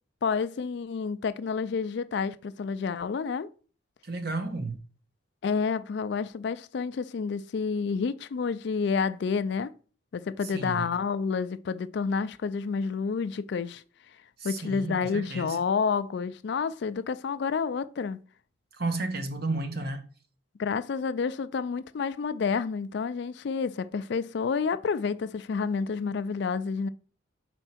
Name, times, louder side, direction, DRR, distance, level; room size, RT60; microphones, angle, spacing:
voice 1, 0.2-3.5 5.4-9.7 10.1-13.8 14.4-18.2 20.6-26.9, left 5 dB, 55° left, 0.3 m, -29 dB
voice 2, 4.0-4.8 10.5-10.9 14.4-15.6 18.8-20.0, right 2 dB, 50° right, 1.0 m, -32 dB
4.5 x 4.4 x 5.8 m
head